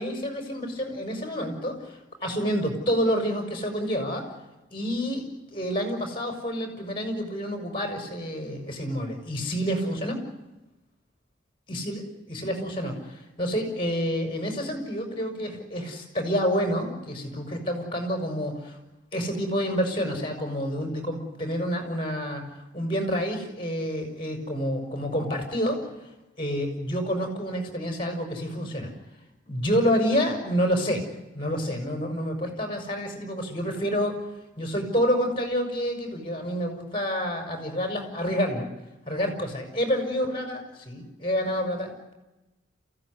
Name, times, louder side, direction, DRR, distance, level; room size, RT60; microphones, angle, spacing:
voice 1, 0.0-4.2 4.7-5.2 5.5-10.2 11.7-18.8 19.1-25.8 26.4-28.9 29.5-31.0 31.3-34.1 34.6-38.7 39.1-42.1, equal, 25° left, 4 dB, 5.7 m, -28 dB
27.5 x 16.0 x 9.8 m, 1.0 s
head